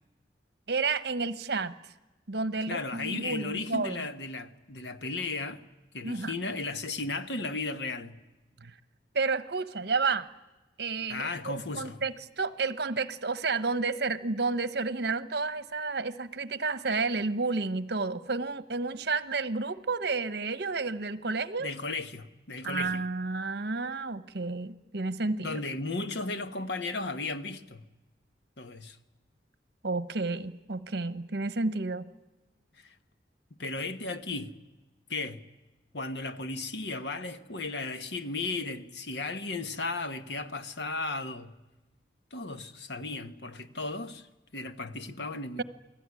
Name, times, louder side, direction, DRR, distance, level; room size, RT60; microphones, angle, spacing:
voice 1, 0.7-1.7 2.3-4.1 6.0-6.3 8.6-8.8 9.1-10.3 10.8-21.7 22.6-25.6 29.8-32.1, right 4 dB, 65° right, 1.1 m, -31 dB
voice 2, 2.7-5.6 5.9-8.2 11.1-12.0 21.6-23.1 25.4-27.8 28.6-29.0 32.8-33.0 33.6-34.5 35.1-35.4 35.9-41.5 42.3-45.6, left 3 dB, 70° left, 1.4 m, -35 dB
29.0 x 20.5 x 9.8 m
head